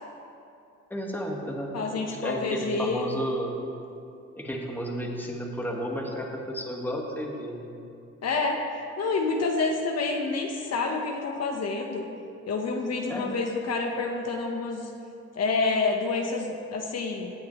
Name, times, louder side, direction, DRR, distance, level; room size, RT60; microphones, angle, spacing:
voice 1, 0.9-3.5 4.3-7.7 13.1-13.4, equal, 5° left, -1 dB, 1.8 m, -32 dB
voice 2, 1.7-3.0 8.2-8.6 9.0-12.1 12.5-14.9 15.3-17.3, left 3 dB, 55° left, 1 dB, 1.2 m, -28 dB
17.5 x 8.4 x 3.2 m, 2.6 s
cardioid pair, 90°, 30 cm